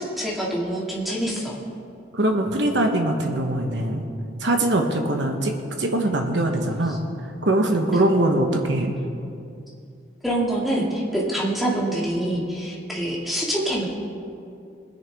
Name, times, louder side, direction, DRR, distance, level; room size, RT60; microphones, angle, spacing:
voice 1, 0.0-1.6 10.2-13.9, right 1 dB, ahead, -5 dB, 2.2 m, -25 dB
voice 2, 2.1-4.1 4.4-5.5 5.8-7.0 7.4-8.9, right 1 dB, 90° right, 3 dB, 1.1 m, -22 dB
21.0 x 10.0 x 3.5 m, 2.5 s
head